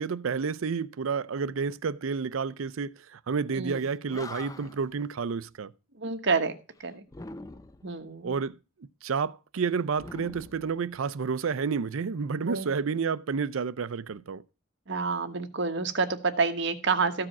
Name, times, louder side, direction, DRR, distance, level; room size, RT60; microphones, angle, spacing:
voice 1, 0.0-5.7 8.2-8.5 8.8-14.4, right 5 dB, 85° right, 0.5 m, -30 dB
Animal, 3.8-3.9 4.1-4.9 7.1-7.9 9.9-11.3, left 2 dB, 15° left, 0.5 m, -43 dB
voice 2, 6.0-6.6 6.8-7.0 7.8-8.4 12.5-12.7 14.9-17.3, right 4 dB, 60° right, 1.2 m, -28 dB
14.0 x 4.9 x 5.9 m
head